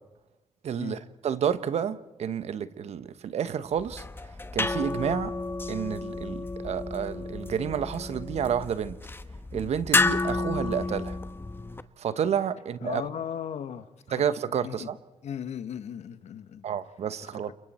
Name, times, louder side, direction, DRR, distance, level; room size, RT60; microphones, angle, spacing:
voice 1, 0.6-4.0 4.5-5.3 5.7-9.0 9.5-11.2 12.0-13.0 14.1-15.0 16.6-17.5, right 8 dB, 65° right, 1.1 m, -30 dB
sound 1, 3.8-11.8, left 2 dB, 20° left, 1.1 m, -31 dB
voice 2, 12.8-13.9 14.6-14.9 15.2-16.6 17.2-17.5, left 8 dB, 70° left, 1.3 m, -36 dB
29.5 x 29.0 x 4.3 m
supercardioid pair, 60°, 12 cm